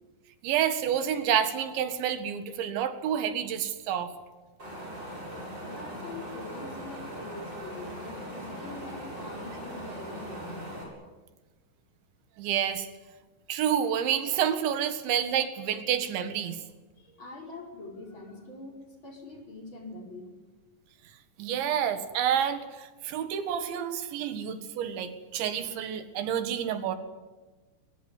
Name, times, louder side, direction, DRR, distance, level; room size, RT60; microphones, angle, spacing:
voice 1, 0.4-4.1 12.4-12.9 13.5-16.6 21.4-27.0, right 9 dB, 90° right, 10 dB, 4.1 m, -29 dB
Wind, 4.6-10.8, equal, 25° right, 8.5 m, -40 dB
voice 2, 5.7-10.7 17.0-20.3 24.2-24.3, left 2 dB, 25° left, 1 dB, 5.3 m, -44 dB
23.0 x 22.5 x 9.8 m, 1.2 s
omnidirectional pair, 5.1 m